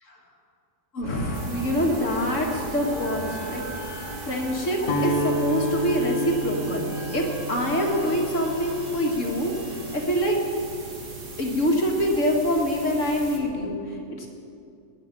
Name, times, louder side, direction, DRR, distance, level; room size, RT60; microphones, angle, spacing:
voice 1, 0.9-3.6 4.3-10.4 11.4-14.3, equal, 60° left, 0 dB, 2.4 m, -25 dB
sound 1, 1.0-10.4, equal, 30° right, 2.0 m, -38 dB
sound 2, 1.3-13.4, right 3 dB, 75° right, 2.2 m, -41 dB
Guitar, 4.8-10.9, right 1 dB, 80° left, 1.9 m, -31 dB
18.0 x 6.2 x 9.9 m, 2.5 s
omnidirectional pair, 1.5 m